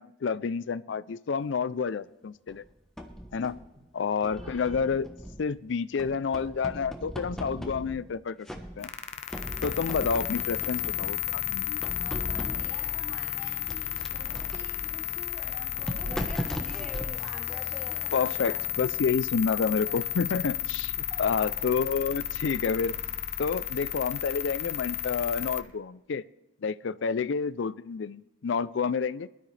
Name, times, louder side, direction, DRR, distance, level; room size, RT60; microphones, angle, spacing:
voice 1, 0.0-2.6 3.3-3.6 3.9-5.1 5.4-8.5 8.8-8.9 9.6-11.8 18.1-22.9 23.4-26.2 26.6-29.3, left 5 dB, 75° left, 17 dB, 0.4 m, -29 dB
sound 1, 2.5-3.7 4.2-5.6 6.0-8.2 8.5-9.0 9.3-11.3 11.8-12.9 13.7-18.2, equal, 5° left, 1.0 m, -39 dB
sound 2, 8.8-25.6, left 12 dB, 35° left, 0.7 m, -33 dB
voice 2, 12.0-18.6 19.8-20.0 21.1-21.5 27.1-27.2, equal, 20° right, -6 dB, 3.4 m, -48 dB
21.0 x 12.5 x 3.3 m, 1.0 s
head